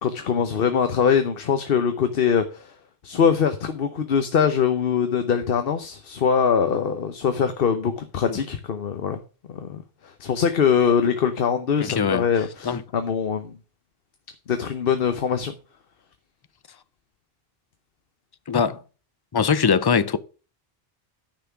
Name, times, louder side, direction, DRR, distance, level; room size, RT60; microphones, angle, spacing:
voice 1, 0.0-2.7 3.0-9.2 9.5-13.6 14.5-15.5, left 7 dB, 65° left, 1.0 m, -23 dB
voice 2, 11.8-12.3 12.6-12.8 18.5-18.8 19.3-20.2, left 6 dB, 35° left, 0.4 m, -21 dB
10.5 x 5.8 x 5.9 m
omnidirectional pair, 1.0 m